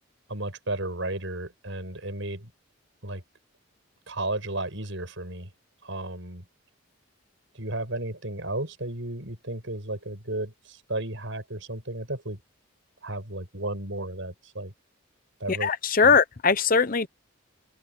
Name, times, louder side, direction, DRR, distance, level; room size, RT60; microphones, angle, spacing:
voice 1, 0.3-2.5 3.0-3.2 4.1-5.5 5.8-6.4 7.5-12.4 13.0-14.7 15.4-15.7 16.0-16.1, right 2 dB, 65° right, 6.5 m, -33 dB
voice 2, 15.6-17.1, left 5 dB, 40° left, 0.7 m, -20 dB
head